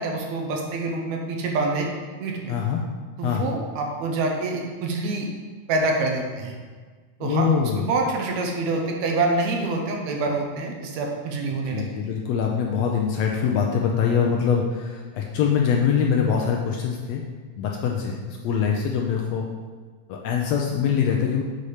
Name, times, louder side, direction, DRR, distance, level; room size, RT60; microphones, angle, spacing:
voice 1, 0.0-1.9 2.2-2.6 3.2-5.3 5.7-6.6 7.2-11.8, right 3 dB, 75° right, 1 dB, 2.0 m, -26 dB
voice 2, 2.5-2.8 3.2-3.5 7.2-7.8 11.7-17.2 17.6-19.5 20.1-21.4, left 7 dB, 80° left, 0 dB, 1.6 m, -23 dB
6.5 x 4.2 x 4.9 m, 1.5 s
omnidirectional pair, 3.4 m